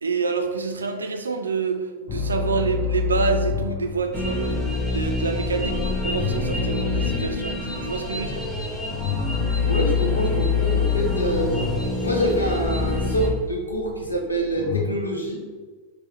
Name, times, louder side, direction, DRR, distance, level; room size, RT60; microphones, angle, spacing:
voice 1, 0.0-4.6 4.8-8.5, right 5 dB, 75° right, 5 dB, 0.4 m, -27 dB
sound 1, 2.1-14.8, left 7 dB, 35° left, 0.5 m, -27 dB
sound 2, 4.1-13.3, left 2 dB, 5° left, 0.8 m, -28 dB
voice 2, 9.7-11.5 12.0-15.4, equal, 80° left, 0 dB, 0.7 m, -25 dB
4.6 x 2.0 x 3.2 m, 1.4 s
figure-of-eight pair, 90°, 0 cm